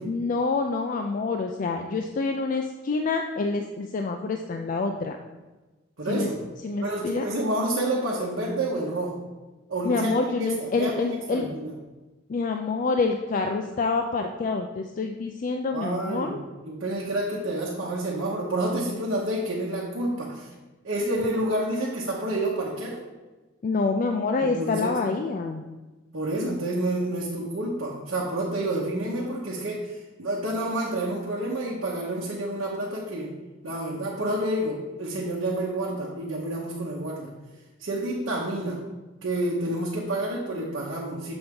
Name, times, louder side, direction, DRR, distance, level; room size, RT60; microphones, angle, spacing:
voice 1, 0.1-5.2 6.1-6.3 6.6-7.2 9.8-11.5 12.3-16.4 23.6-25.6, left 4 dB, 40° left, 4 dB, 0.3 m, -27 dB
voice 2, 6.0-6.4 6.8-9.2 9.7-10.1 10.4-11.7 15.7-20.5 20.8-23.0 24.4-25.0 26.1-33.3 33.6-37.3 37.8-38.8 39.2-41.3, right 1 dB, 75° right, -4 dB, 1.0 m, -29 dB
7.0 x 3.5 x 5.2 m, 1.2 s
head